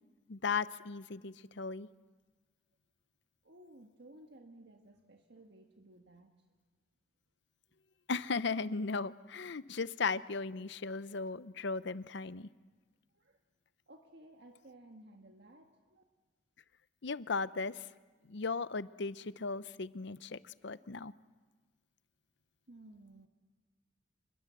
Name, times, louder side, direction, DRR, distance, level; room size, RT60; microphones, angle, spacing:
voice 1, 0.3-1.9 8.1-12.5 17.0-17.9 18.3-21.1, left 4 dB, 60° left, 16 dB, 0.7 m, -36 dB
voice 2, 3.4-6.5 13.1-13.4 13.9-16.0 22.7-23.3, right 1 dB, 60° right, 4 dB, 1.5 m, -57 dB
28.0 x 21.0 x 8.1 m, 1.3 s
head